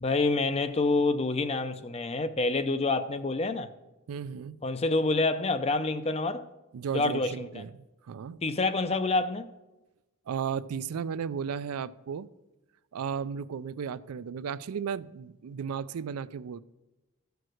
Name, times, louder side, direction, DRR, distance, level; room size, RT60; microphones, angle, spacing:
voice 1, 0.0-3.7 4.6-6.5 6.9-7.6 8.4-9.5, left 3 dB, 30° left, 0.5 m, -27 dB
voice 2, 4.1-4.6 6.7-8.4 10.3-12.3 12.9-16.6, right 7 dB, 90° right, 0.4 m, -35 dB
14.0 x 4.6 x 6.3 m
head